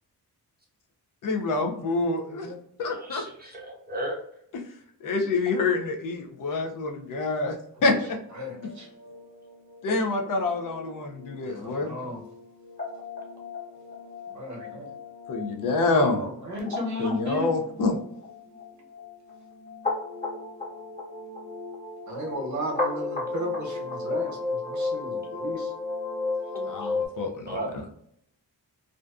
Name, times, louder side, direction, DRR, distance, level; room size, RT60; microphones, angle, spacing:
voice 1, 1.2-2.5 2.8-3.2 4.5-4.6 5.0-7.5 7.8-8.2 9.8-12.0 15.3-16.2 17.0-18.0 26.7-27.8, left 3 dB, 60° left, 3 dB, 0.5 m, -27 dB
voice 2, 2.3-2.6 7.8-7.9 8.3-8.9 11.4-12.2 14.3-14.9 15.7-17.5 22.1-25.7, equal, 50° right, -1 dB, 0.9 m, -35 dB
voice 3, 2.9-4.2 27.4-27.7, right 1 dB, 25° right, -2 dB, 0.5 m, -34 dB
sound 1, 8.4-27.1, left 3 dB, 20° left, 1.0 m, -35 dB
2.5 x 2.2 x 2.4 m, 0.71 s
cardioid pair, 115°, 38 cm